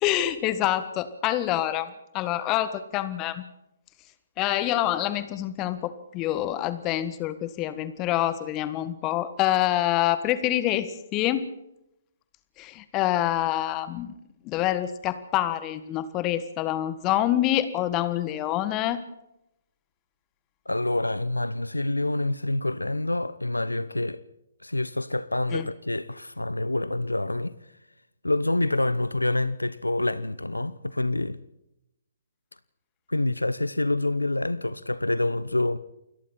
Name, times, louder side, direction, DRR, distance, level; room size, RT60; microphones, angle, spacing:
voice 1, 0.0-3.4 4.4-11.4 12.6-14.1 14.4-19.0 25.5-25.7, left 13 dB, 25° left, 1.5 m, -26 dB
voice 2, 20.7-24.2 24.6-27.5 28.2-31.4 33.1-35.8, left 2 dB, 85° left, 0.9 m, -27 dB
29.0 x 21.5 x 4.4 m
figure-of-eight pair, 130°, 0 cm